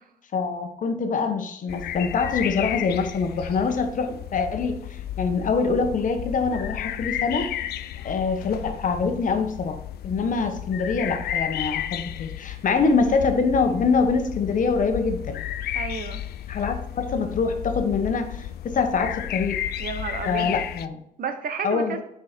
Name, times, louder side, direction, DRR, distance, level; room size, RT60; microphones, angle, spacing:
voice 1, 0.3-7.5 8.0-15.4 16.5-19.6 20.3-21.0 21.6-22.0, left 4 dB, 55° left, 7 dB, 1.1 m, -24 dB
sound 1, 1.7-20.9, left 12 dB, 85° left, 0.4 m, -33 dB
voice 2, 15.7-16.2 19.8-20.6 21.2-22.0, right 6 dB, 65° right, 8 dB, 1.0 m, -31 dB
6.3 x 4.7 x 4.4 m, 0.76 s
cardioid pair, 100°, 16 cm